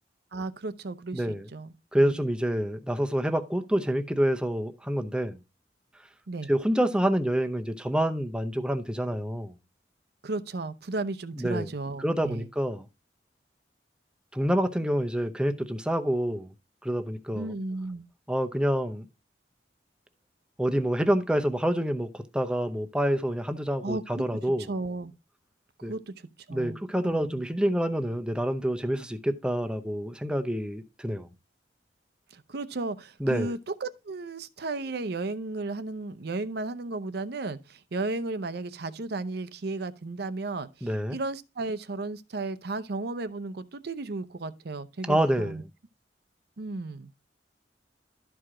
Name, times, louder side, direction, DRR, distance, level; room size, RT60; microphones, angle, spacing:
voice 1, 0.3-1.7 2.0-2.2 6.3-6.5 10.2-12.5 17.3-18.1 23.8-24.3 24.7-25.1 25.9-26.1 26.5-27.4 32.3-45.6 46.6-47.1, right 3 dB, 65° right, 0.7 m, -34 dB
voice 2, 1.1-1.5 1.9-5.4 6.5-9.5 11.4-11.7 12.0-12.8 14.3-16.5 16.8-17.5 18.3-19.1 20.6-24.7 25.8-25.9 26.5-31.3 33.2-33.5 40.8-41.2 45.1-45.6, equal, 5° right, 0.7 m, -27 dB
12.5 x 4.8 x 3.7 m
head